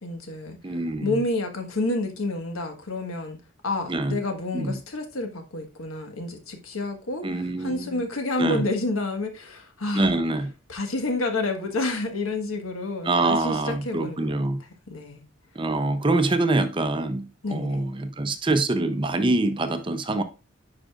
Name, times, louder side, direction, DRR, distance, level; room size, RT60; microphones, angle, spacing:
voice 1, 0.0-0.6 1.0-3.4 3.6-7.2 7.6-10.1 10.7-14.3 14.9-15.2 17.4-17.8, left 2 dB, 85° left, 1.5 m, -29 dB
voice 2, 0.6-1.2 3.9-4.2 4.5-4.8 7.2-8.0 8.4-8.7 9.9-10.5 13.0-14.6 15.5-20.2, right 2 dB, 25° right, 0.6 m, -25 dB
10.0 x 5.0 x 2.4 m
head